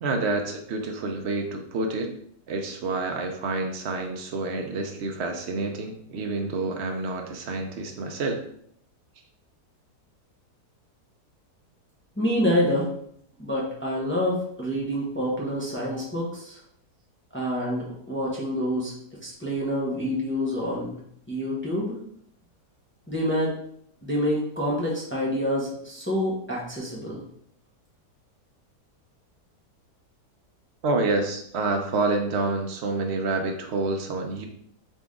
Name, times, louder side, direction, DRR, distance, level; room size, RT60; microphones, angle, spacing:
voice 1, 0.0-2.1 2.5-8.4 30.8-34.5, right 3 dB, 70° right, 3 dB, 0.6 m, -28 dB
voice 2, 12.2-12.9 13.4-16.6 17.3-18.9 19.2-21.0 21.3-22.0 23.1-23.5 24.0-27.2, equal, 10° left, -4 dB, 0.8 m, -27 dB
4.0 x 3.4 x 3.7 m, 0.67 s
omnidirectional pair, 1.8 m